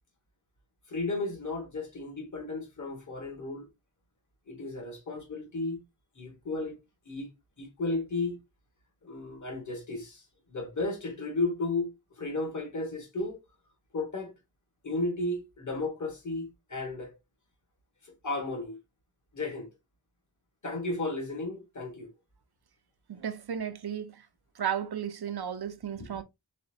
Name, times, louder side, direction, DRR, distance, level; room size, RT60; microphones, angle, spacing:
voice 1, 0.9-3.7 4.5-5.8 6.1-6.7 7.0-7.3 7.6-8.4 9.0-10.2 10.5-13.4 13.9-14.3 14.8-17.2 18.0-18.8 19.3-19.7 20.6-22.1, left 2 dB, 40° left, 1.5 m, -34 dB
voice 2, 23.1-24.2 24.6-26.2, right 8 dB, 60° right, 0.7 m, -34 dB
4.2 x 3.5 x 2.7 m
wide cardioid pair, 55°, 43 cm